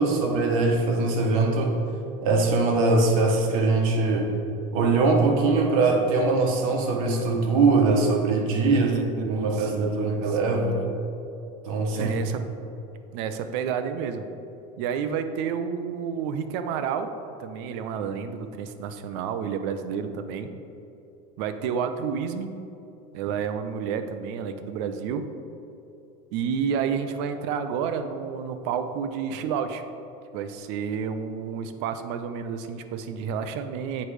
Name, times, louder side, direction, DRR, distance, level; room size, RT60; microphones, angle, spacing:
voice 1, 0.0-1.8 2.2-4.3 4.7-8.9 9.3-10.8 11.7-12.2, right 3 dB, 90° right, 2 dB, 1.1 m, -22 dB
voice 2, 8.7-10.9 11.9-12.5 13.1-14.3 14.8-17.1 17.4-20.5 21.4-22.5 23.1-25.3 26.3-29.8 30.3-34.1, right 7 dB, 55° right, 9 dB, 0.4 m, -30 dB
7.9 x 3.2 x 4.8 m, 2.7 s
cardioid pair, 180°, 17 cm